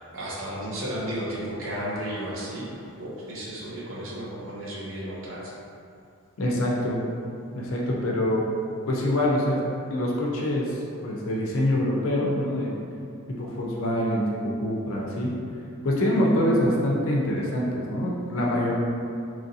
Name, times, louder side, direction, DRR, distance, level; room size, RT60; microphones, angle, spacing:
voice 1, 0.1-5.5, equal, 65° right, -5 dB, 0.7 m, -33 dB
voice 2, 6.4-7.0 7.5-8.5 8.9-9.6 9.9-12.8 13.3-15.4 15.8-18.7, left 1 dB, 70° left, -3 dB, 0.5 m, -25 dB
3.0 x 2.6 x 2.6 m, 2.5 s
head